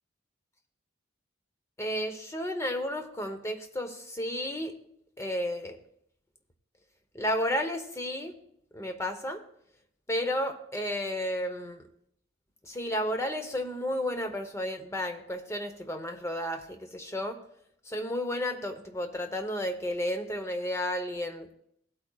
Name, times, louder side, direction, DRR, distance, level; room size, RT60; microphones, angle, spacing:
voice 1, 1.8-4.7 5.2-5.8 7.1-8.4 8.7-9.4 10.1-11.8 12.6-17.4 17.9-21.5, left 1 dB, 15° left, 6 dB, 0.9 m, -32 dB
16.5 x 8.6 x 2.4 m, 0.71 s
head